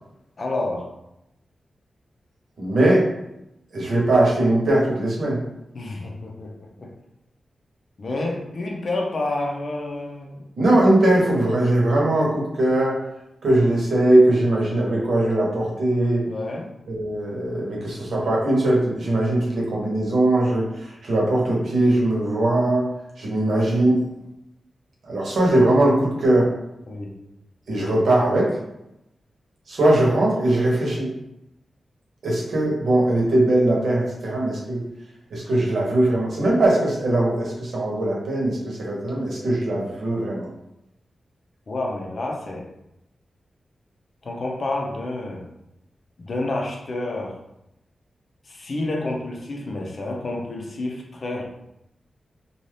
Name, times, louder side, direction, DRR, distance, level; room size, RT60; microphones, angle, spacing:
voice 1, 0.4-0.9 5.7-6.9 8.0-10.4 16.2-16.7 26.9-27.2 41.7-42.7 44.2-45.5 46.2-47.4 48.5-51.4, left 2 dB, 50° left, 0 dB, 0.6 m, -29 dB
voice 2, 2.6-3.1 3.7-5.4 10.6-13.0 13.4-16.2 16.9-22.8 23.2-24.0 25.0-26.5 27.7-28.6 29.7-31.1 32.2-34.8 35.3-40.5, right 1 dB, 75° right, -3 dB, 1.0 m, -20 dB
2.7 x 2.3 x 3.2 m, 0.85 s
wide cardioid pair, 115°, 0 cm